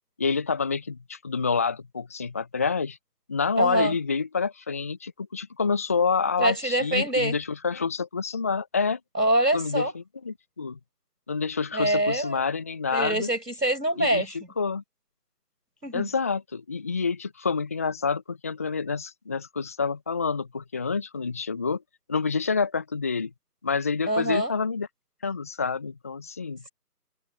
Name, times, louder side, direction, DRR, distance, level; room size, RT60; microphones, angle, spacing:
voice 1, 0.2-3.0 3.3-9.0 9.5-10.8 11.3-13.3 14.0-14.8 15.9-21.8 22.1-23.3 23.6-24.9 25.2-26.7, left 5 dB, 10° left, 1.6 m, -28 dB
voice 2, 3.6-3.9 6.4-7.4 9.1-9.9 11.7-12.4 12.9-14.4 15.8-16.1 24.1-24.5, right 1 dB, 85° right, 7.7 m, -24 dB
figure-of-eight pair, 160°, 48 cm